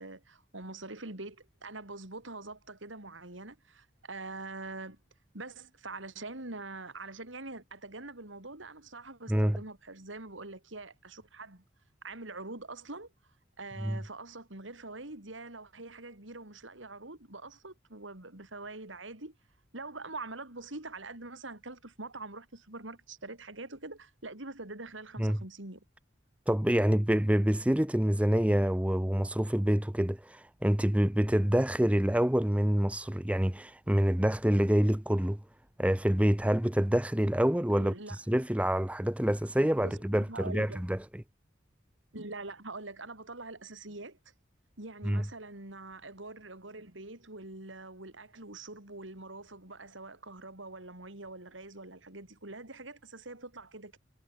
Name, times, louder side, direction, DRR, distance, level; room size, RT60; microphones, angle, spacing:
voice 1, 0.0-5.0 5.3-11.6 12.0-13.1 13.6-19.4 19.7-25.8 37.8-38.2 39.6-40.8 42.1-44.2 44.8-54.0, right 2 dB, 85° right, 4.3 m, -44 dB
voice 2, 26.5-35.4 35.8-37.9 38.3-41.0 45.0-45.2, equal, 5° right, 0.6 m, -26 dB
head